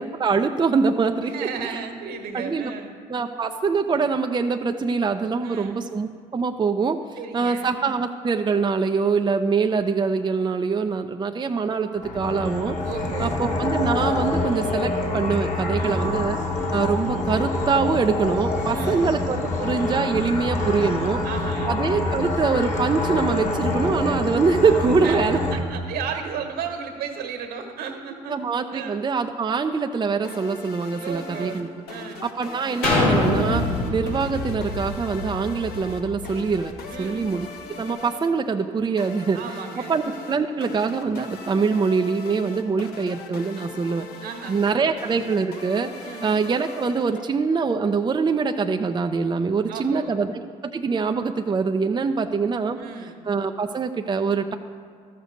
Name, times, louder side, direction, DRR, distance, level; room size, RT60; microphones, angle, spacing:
voice 1, 0.0-1.3 1.6-1.8 2.3-2.7 3.1-12.8 13.2-16.4 16.7-21.2 21.7-25.4 28.3-31.7 32.2-36.7 37.0-37.5 37.8-39.5 39.9-44.1 44.5-45.9 46.2-50.4 50.7-52.8 53.2-54.5, right 5 dB, 25° right, 5 dB, 0.6 m, -24 dB
voice 2, 1.3-2.9 5.4-5.8 7.2-7.7 12.9-13.4 15.8-16.1 18.7-19.1 21.0-21.7 25.0-25.2 25.5-28.4 28.7-29.0 31.0-32.2 36.9-37.4 39.3-39.9 44.2-45.0 46.0-46.4 49.7-50.2 52.8-53.2, right 6 dB, 70° right, 4 dB, 1.5 m, -34 dB
sound 1, 12.0-25.6, left 2 dB, 45° left, 2.0 m, -26 dB
sound 2, 30.2-47.7, left 4 dB, 70° left, 1.0 m, -40 dB
sound 3, 32.8-36.6 37.1-37.2, left 2 dB, 85° left, 2.5 m, -25 dB
12.5 x 6.7 x 5.1 m, 2.2 s
hypercardioid pair, 60°, 17 cm